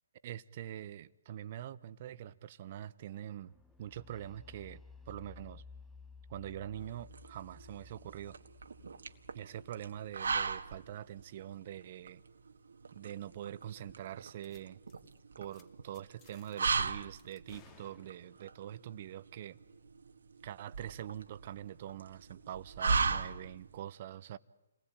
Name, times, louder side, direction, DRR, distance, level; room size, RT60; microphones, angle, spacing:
voice 1, 0.2-3.5 3.8-5.6 6.3-8.4 9.3-12.2 12.9-14.8 15.4-19.6 20.4-24.4, right 11 dB, 45° right, 1.1 m, -44 dB
sound 1, 3.5-11.2, left 4 dB, 5° left, 1.2 m, -56 dB
sound 2, 6.8-23.8, right 5 dB, 75° right, 1.7 m, -38 dB
sound 3, 14.4-14.6 14.9-15.1 15.4-15.6 15.9-16.8 17.2-18.5, left 6 dB, 25° left, 2.6 m, -61 dB
29.0 x 20.0 x 9.1 m
figure-of-eight pair, 135°, 0 cm